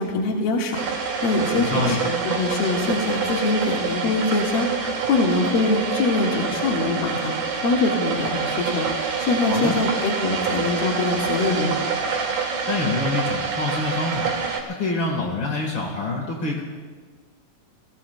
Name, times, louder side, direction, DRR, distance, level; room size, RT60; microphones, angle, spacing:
voice 1, 0.0-11.7, left 3 dB, 75° left, -2 dB, 3.5 m, -24 dB
sound 1, 0.7-14.6, right 5 dB, 55° right, 3.4 m, -26 dB
voice 2, 1.5-2.0 9.5-9.8 12.7-14.3 14.8-16.6, left 3 dB, 55° left, 0 dB, 1.4 m, -26 dB
29.5 x 20.5 x 2.3 m, 1.5 s
omnidirectional pair, 4.4 m